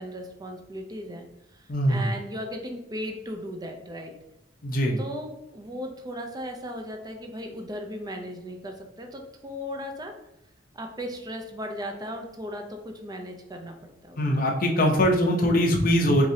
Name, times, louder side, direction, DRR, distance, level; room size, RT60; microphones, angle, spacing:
voice 1, 0.0-4.1 5.0-10.1 10.7-14.2, equal, 20° right, 3 dB, 0.5 m, -37 dB
voice 2, 1.7-2.1 4.6-5.0 14.2-16.3, equal, 50° left, 1 dB, 0.7 m, -22 dB
4.7 x 2.6 x 2.8 m, 0.91 s
head